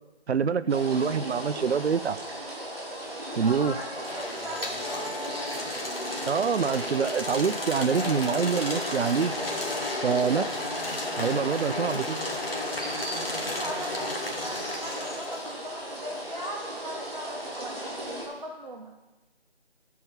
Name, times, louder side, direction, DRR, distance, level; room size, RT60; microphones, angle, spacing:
voice 1, 0.3-2.2 3.4-3.8 6.3-9.3 10.0-10.5 11.2-12.2, right 6 dB, 75° right, 14 dB, 0.5 m, -25 dB
sound 1, 0.7-18.3, right 1 dB, 25° right, 2.0 m, -37 dB
voice 2, 3.4-5.2 13.4-18.9, equal, 40° right, -3 dB, 1.0 m, -40 dB
Brass instrument, 3.6-12.2, left 2 dB, 5° left, 2.6 m, -43 dB
sound 2, 3.9-15.5, left 2 dB, 60° left, 1.7 m, -34 dB
11.5 x 4.7 x 5.7 m, 1.1 s
figure-of-eight pair, 170°, 33 cm